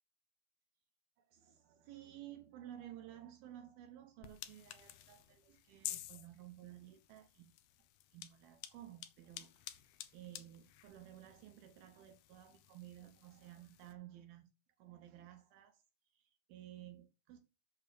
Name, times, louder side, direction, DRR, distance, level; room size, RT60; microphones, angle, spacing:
voice 1, 1.2-7.5 8.1-9.7 10.1-14.5 14.8-15.8 16.1-17.4, right 12 dB, 90° right, 2.1 m, -54 dB
sound 1, 4.2-13.9, left 13 dB, 85° left, 2.2 m, -52 dB
7.9 x 6.7 x 6.7 m
omnidirectional pair, 5.6 m